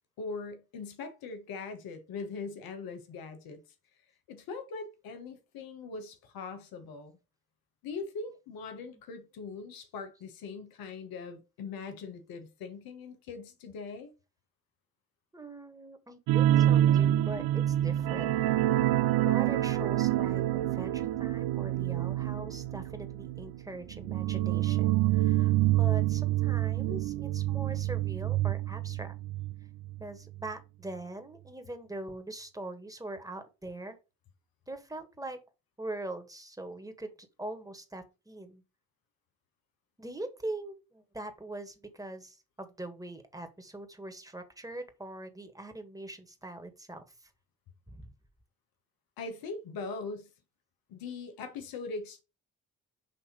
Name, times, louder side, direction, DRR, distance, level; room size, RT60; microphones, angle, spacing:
voice 1, 0.2-3.6 4.3-7.1 7.8-14.1 49.2-50.3 50.9-52.2, left 4 dB, 85° left, 1.2 m, -41 dB
voice 2, 15.3-18.4 19.2-29.2 30.0-34.0 34.7-35.4 35.8-38.6 40.0-47.3 47.9-48.1, right 2 dB, 10° right, 1.7 m, -42 dB
sound 1, 16.3-29.5 29.8-30.0 30.4-30.5, right 13 dB, 85° right, 0.5 m, -27 dB
6.5 x 2.8 x 5.2 m
supercardioid pair, 50°, 35 cm